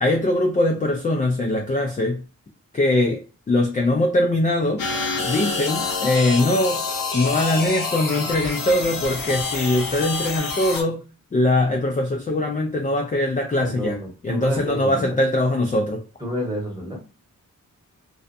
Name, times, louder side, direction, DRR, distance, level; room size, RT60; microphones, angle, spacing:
voice 1, 0.0-2.2 2.7-4.8 5.2-6.8 7.1-11.1 11.3-14.0 14.2-16.1, left 1 dB, 25° left, 1 dB, 0.3 m, -21 dB
sound 1, 4.8-10.8, left 4 dB, 85° left, 0.7 m, -27 dB
voice 2, 13.6-15.2 16.2-17.0, equal, 10° right, -2 dB, 1.0 m, -30 dB
2.4 x 2.2 x 2.5 m, 0.33 s
wide cardioid pair, 75°, 33 cm